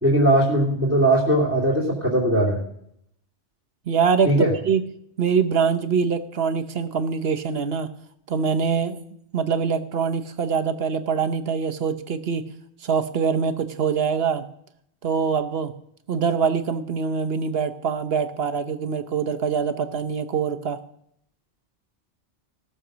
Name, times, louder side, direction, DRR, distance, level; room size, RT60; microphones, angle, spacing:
voice 1, 0.0-2.6 4.2-4.5, right 1 dB, 10° right, -6 dB, 2.8 m, -19 dB
voice 2, 3.9-4.3 4.6-4.8 5.2-7.9 8.3-9.0 9.3-12.4 12.8-14.4 15.0-15.7 16.1-20.8, right 6 dB, 60° right, 10 dB, 1.1 m, -24 dB
17.5 x 6.7 x 6.2 m, 0.70 s
omnidirectional pair, 1.2 m